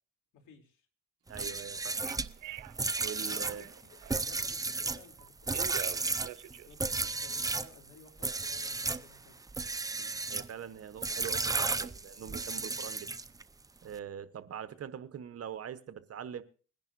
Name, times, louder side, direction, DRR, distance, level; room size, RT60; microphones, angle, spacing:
voice 1, 0.3-0.9 3.2-6.3 6.6-9.4, left 5 dB, 75° left, 3 dB, 3.0 m, -57 dB
sound 1, 1.3-7.7 8.2-9.1 9.5-10.5 11.0-13.4, right 3 dB, 10° right, 0.5 m, -34 dB
voice 2, 1.3-2.0 3.0-3.6 9.9-13.1 13.8-16.4, right 9 dB, 50° right, 12 dB, 1.0 m, -43 dB
Telephone, 1.9-4.4 5.2-7.6, right 16 dB, 85° right, 0.6 m, -46 dB
22.0 x 10.5 x 2.6 m, 0.37 s
cardioid pair, 90°, 30 cm